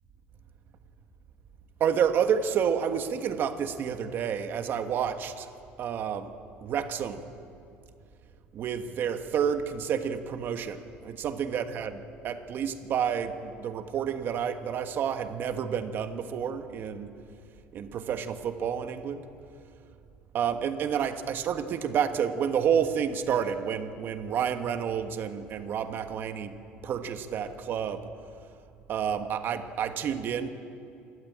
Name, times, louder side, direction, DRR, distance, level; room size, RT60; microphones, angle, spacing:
voice 1, 1.8-5.5 5.8-6.3 6.6-7.2 8.5-17.1 17.7-19.3 20.3-26.5 26.8-28.1 28.9-30.5, right 8 dB, 45° right, 8 dB, 1.4 m, -29 dB
28.0 x 13.0 x 8.8 m, 2.6 s
cardioid pair, 135°, 5 cm